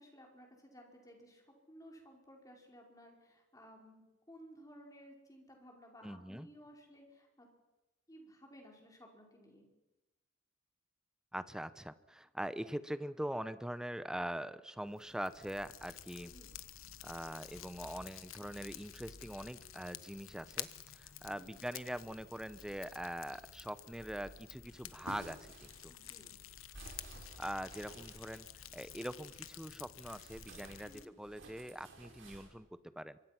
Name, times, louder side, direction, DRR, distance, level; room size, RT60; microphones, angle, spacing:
voice 1, 0.0-7.5 8.1-9.7 16.2-16.5 21.3-21.5 25.9-26.3 30.8-31.1, equal, 15° left, 1 dB, 5.1 m, -57 dB
voice 2, 6.0-6.5 11.3-16.3 17.0-25.9 27.4-28.5 28.7-33.2, equal, 5° right, 14 dB, 0.8 m, -43 dB
Fire, 14.9-31.1, left 10 dB, 80° left, 1.2 m, -51 dB
sound 1, 24.7-29.5 30.0-32.5, right 2 dB, 70° right, 6.6 m, -54 dB
25.5 x 24.5 x 6.0 m, 1.0 s
head